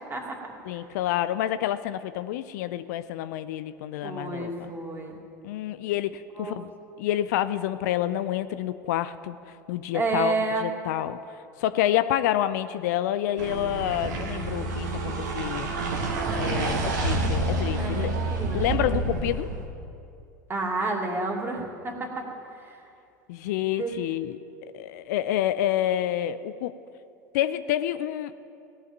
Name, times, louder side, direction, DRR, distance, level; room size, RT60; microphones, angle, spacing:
voice 1, 0.1-0.4 4.0-5.2 6.4-6.5 9.9-10.7 17.8-18.6 18.8-19.0 20.5-22.8 23.8-23.9, right 3 dB, 25° right, 0 dB, 2.3 m, -30 dB
voice 2, 0.7-4.7 5.4-6.7 7.0-9.4 9.7-11.2 11.6-15.7 16.3-18.1 18.5-19.5 23.3-24.4 24.7-26.7 27.3-28.3, left 12 dB, 65° left, 13 dB, 0.4 m, -28 dB
sound 1, 13.4-19.7, right 2 dB, 75° right, 1.5 m, -28 dB
17.0 x 5.7 x 9.0 m, 2.5 s
hypercardioid pair, 75°, 10 cm